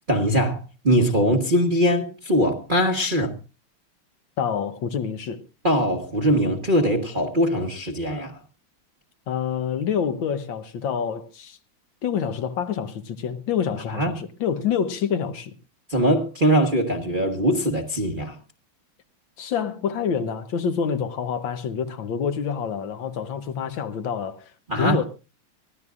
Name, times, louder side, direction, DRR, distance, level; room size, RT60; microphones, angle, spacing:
voice 1, 0.1-3.3 5.6-8.4 13.9-14.1 15.9-18.4 24.7-25.0, equal, 30° right, 1.0 m, -21 dB
voice 2, 4.4-5.4 9.3-11.6 12.0-15.5 19.4-24.5 24.8-25.1, left 7 dB, 65° left, 1.5 m, -27 dB
23.5 x 15.0 x 2.4 m
omnidirectional pair, 2.4 m